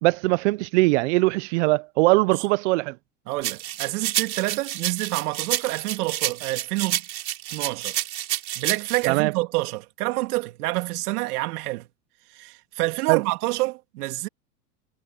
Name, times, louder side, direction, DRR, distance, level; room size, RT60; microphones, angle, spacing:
voice 1, 0.0-2.9 9.1-9.3 13.1-13.2, right 22 dB, 50° right, 0.5 m, -21 dB
voice 2, 3.3-7.0 7.5-8.0 8.6-11.9 12.3-14.3, right 20 dB, 65° right, 2.8 m, -28 dB
sound 1, 3.4-9.0, right 13 dB, 85° right, 4.3 m, -29 dB
supercardioid pair, 135°, 49 cm